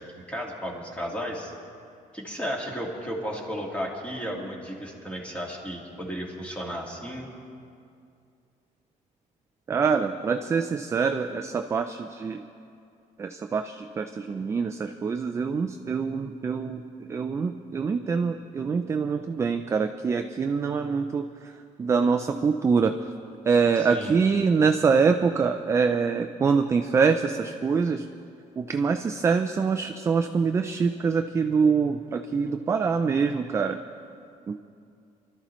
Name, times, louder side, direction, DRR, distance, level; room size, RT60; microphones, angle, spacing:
voice 1, 0.0-1.5 2.1-7.3 23.7-24.1, equal, 10° left, -1 dB, 1.8 m, -34 dB
voice 2, 9.7-12.4 13.2-16.8 17.1-23.0 23.5-28.1 28.6-33.8 34.5-34.6, right 5 dB, 20° right, 6 dB, 0.3 m, -25 dB
25.5 x 13.0 x 3.1 m, 2.4 s
cardioid pair, 170°, 15 cm